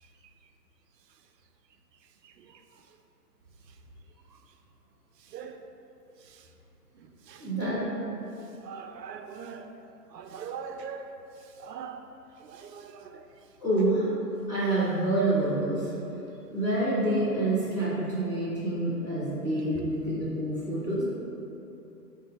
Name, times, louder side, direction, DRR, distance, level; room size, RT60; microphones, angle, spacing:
voice 1, 7.4-7.8 13.6-14.1 14.5-15.9 16.5-21.0, right 1 dB, 20° left, -16 dB, 0.6 m, -27 dB
voice 2, 8.6-9.7 10.1-11.1 11.6-12.0 12.4-13.2 19.7-19.9, right 6 dB, 80° right, 6 dB, 0.6 m, -40 dB
4.4 x 2.7 x 4.0 m, 2.9 s
hypercardioid pair, 175°, 49 cm